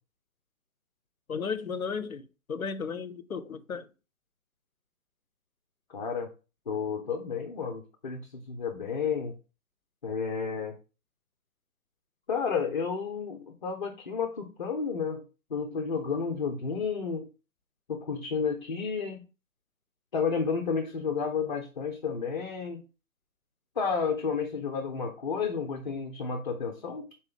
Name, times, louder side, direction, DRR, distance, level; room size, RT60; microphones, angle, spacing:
voice 1, 1.3-3.9, left 5 dB, 90° left, 0.6 m, -34 dB
voice 2, 5.9-6.3 6.7-9.3 10.0-10.7 12.3-15.2 15.5-17.3 17.9-19.2 20.1-22.8 23.8-27.0, left 5 dB, 35° left, 0.6 m, -31 dB
4.2 x 3.2 x 3.6 m
figure-of-eight pair, 135°, 41 cm